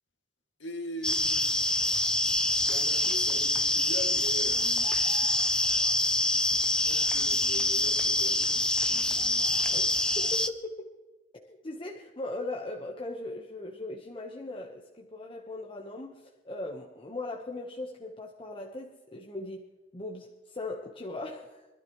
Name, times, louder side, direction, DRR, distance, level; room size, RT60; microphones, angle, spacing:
voice 1, 0.6-1.5 2.7-4.9 6.3-9.5, equal, 85° left, 2.4 m, -42 dB
sound 1, 1.0-10.5, left 1 dB, 5° left, 0.6 m, -26 dB
voice 2, 9.6-10.9 11.4-19.6 19.9-21.6, left 2 dB, 30° left, 1.2 m, -39 dB
25.0 x 13.0 x 3.2 m
head